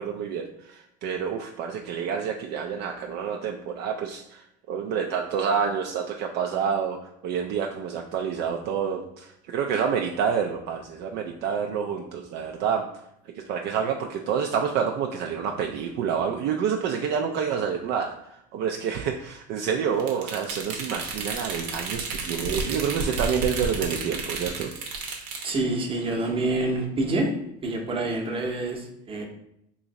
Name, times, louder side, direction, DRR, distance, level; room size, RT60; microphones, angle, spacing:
voice 1, 0.0-12.8 13.4-18.1 18.5-24.7, right 7 dB, 55° right, 2 dB, 0.4 m, -28 dB
sound 1, 20.0-25.5, right 4 dB, 90° right, 0.8 m, -32 dB
voice 2, 25.4-27.3 27.6-29.2, right 2 dB, 25° right, 1 dB, 0.8 m, -27 dB
3.0 x 2.5 x 3.9 m, 0.77 s
supercardioid pair, 105°, 21 cm